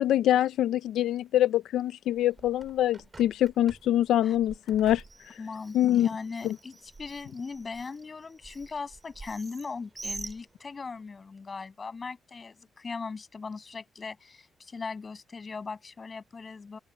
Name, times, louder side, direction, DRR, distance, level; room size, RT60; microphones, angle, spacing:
voice 1, 0.0-5.3 5.7-6.1 6.4-6.6, left 12 dB, 85° left, 0.5 m, -25 dB
Bird, 2.1-11.0, right 3 dB, 25° right, 4.4 m, -47 dB
voice 2, 5.4-16.8, left 4 dB, 30° left, 7.6 m, -39 dB
cardioid pair, 115°, 0 cm